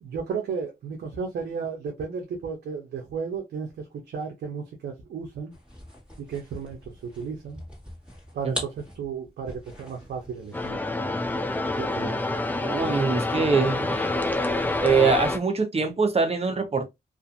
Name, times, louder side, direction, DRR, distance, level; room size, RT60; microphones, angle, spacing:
voice 1, 0.0-5.5 6.2-7.6 8.3-10.8 11.8-12.2, right 6 dB, 90° right, 0.6 m, -34 dB
sound 1, 5.5-10.9, left 1 dB, 5° right, 1.4 m, -41 dB
sound 2, 10.5-15.4, left 2 dB, 10° left, 0.5 m, -27 dB
voice 2, 12.6-14.1 14.8-16.9, right 4 dB, 35° right, 0.8 m, -23 dB
2.5 x 2.5 x 2.4 m
cardioid pair, 60°, 17 cm